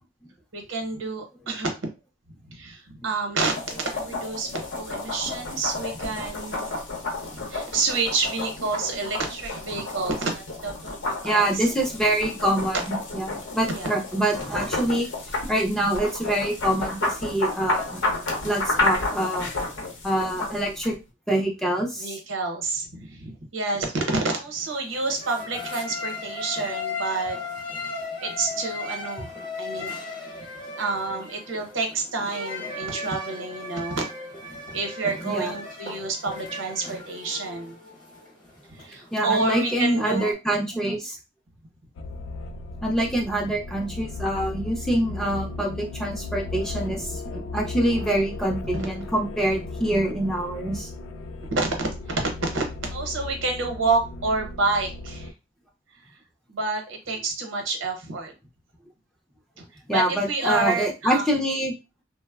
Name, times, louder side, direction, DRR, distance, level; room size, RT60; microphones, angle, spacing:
voice 1, 0.5-1.9 2.5-6.7 7.3-11.6 13.7-14.0 22.0-27.4 27.7-27.8 28.2-29.3 29.6-29.9 30.8-34.0 34.5-37.7 38.7-40.3 40.7-41.0 48.7-48.8 51.5-52.6 52.9-55.3 56.5-58.3 59.6-59.7 59.9-61.2, right 3 dB, 80° right, 4 dB, 0.7 m, -28 dB
sound 1, 3.4-20.9, left 2 dB, 70° left, 0.7 m, -31 dB
voice 2, 11.2-15.1 15.5-18.0 18.4-19.5 20.0-21.0 21.3-22.2 35.2-35.5 39.1-41.2 42.8-50.9 59.9-61.7, right 1 dB, ahead, -1 dB, 0.4 m, -25 dB
sound 2, 24.6-40.3, left 3 dB, 25° left, 0.8 m, -37 dB
sound 3, 42.0-55.3, left 3 dB, 90° left, 0.4 m, -36 dB
3.1 x 2.0 x 2.3 m, 0.27 s
head